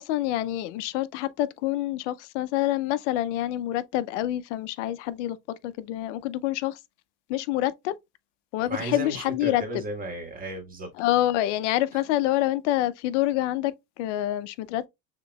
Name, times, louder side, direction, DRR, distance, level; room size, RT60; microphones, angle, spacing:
voice 1, 0.0-5.4 5.6-6.8 7.3-7.9 8.5-9.6 11.0-14.9, left 14 dB, 90° left, 0.5 m, -27 dB
voice 2, 8.7-10.9 11.9-12.0, right 2 dB, 25° right, 1.5 m, -34 dB
6.6 x 2.9 x 2.2 m
supercardioid pair, 130°, 35 cm